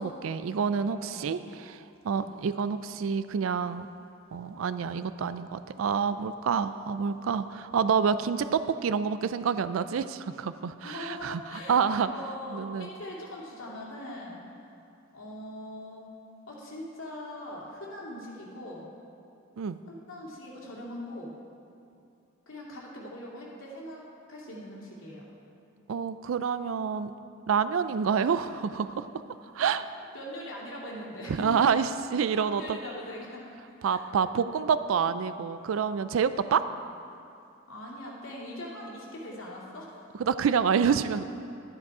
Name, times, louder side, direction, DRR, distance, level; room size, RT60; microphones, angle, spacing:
voice 1, 0.0-3.9 4.3-12.1 12.5-12.9 19.6-19.8 25.9-27.1 27.5-29.1 29.5-29.9 31.3-32.8 33.8-36.6 40.2-41.2, right 6 dB, 80° right, 13 dB, 0.4 m, -28 dB
voice 2, 1.0-1.3 2.1-2.3 10.8-14.5 15.1-16.0 16.5-18.9 19.9-21.3 22.5-24.0 24.3-25.2 30.1-31.7 32.3-33.4 33.9-34.0 36.4-36.5 37.7-39.9, left 1 dB, 80° left, -4 dB, 2.4 m, -41 dB
11.5 x 9.8 x 4.8 m, 2.6 s
head